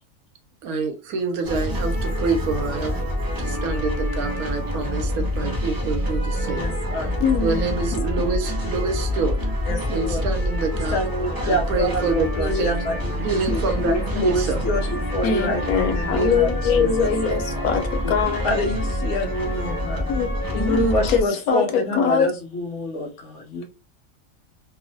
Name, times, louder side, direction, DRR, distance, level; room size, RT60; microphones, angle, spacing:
voice 1, 0.6-3.1 3.4-6.7 7.4-9.4 9.9-11.0 11.4-12.8 13.2-13.9 14.2-14.6, right 4 dB, 90° right, 1.1 m, -27 dB
sound 1, 1.4-21.2, equal, 30° right, 0.4 m, -26 dB
voice 2, 6.5-7.2 9.6-10.2 10.7-17.7 18.4-20.1 20.5-23.7, equal, 65° left, 0.8 m, -27 dB
voice 3, 7.2-7.9 13.5-13.6 15.2-18.4 20.1-22.3, left 6 dB, 85° left, 1.1 m, -23 dB
3.0 x 2.0 x 2.6 m
omnidirectional pair, 1.5 m